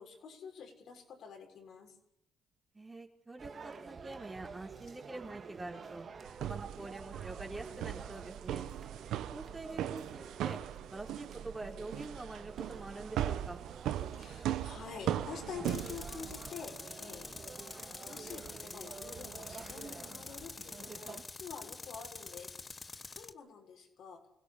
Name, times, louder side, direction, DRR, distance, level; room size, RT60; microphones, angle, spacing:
voice 1, 0.0-2.0 14.1-17.3 18.0-24.2, left 6 dB, 70° left, 3 dB, 6.7 m, -48 dB
voice 2, 2.7-6.0 6.4-8.7 9.3-10.6 10.9-13.6, right 2 dB, 20° right, 2 dB, 4.3 m, -45 dB
sound 1, 3.4-21.2, right 5 dB, 45° right, 2.3 m, -49 dB
sound 2, 6.3-16.5, right 11 dB, 85° right, 1.3 m, -39 dB
Tools, 15.6-23.3, left 3 dB, 30° left, 1.2 m, -47 dB
25.5 x 16.5 x 8.8 m, 0.75 s
cardioid pair, 90°, 0 cm